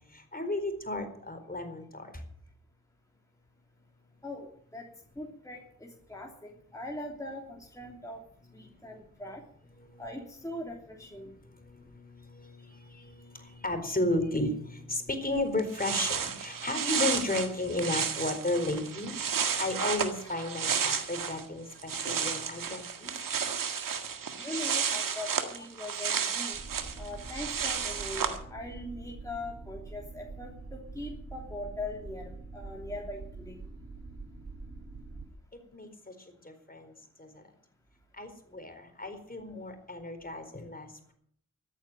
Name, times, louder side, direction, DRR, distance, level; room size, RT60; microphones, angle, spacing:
voice 1, 0.1-2.1 9.9-10.0 11.7-19.1 19.6-23.1 35.7-35.9 36.4-36.9 37.2-37.4 38.2-40.9, left 2 dB, 25° left, 7 dB, 4.3 m, -33 dB
voice 2, 4.2-4.9 5.2-8.2 8.5-9.4 10.0-11.3 24.4-26.6 27.0-33.6, left 1 dB, 10° left, -1 dB, 3.2 m, -41 dB
sound 1, 15.3-15.4 15.6-21.4 21.7-28.4, right 7 dB, 70° right, 1.8 m, -32 dB
sound 2, 26.5-35.3, right 3 dB, 45° right, 5.8 m, -45 dB
14.0 x 9.3 x 9.0 m, 0.65 s
supercardioid pair, 40°, 34 cm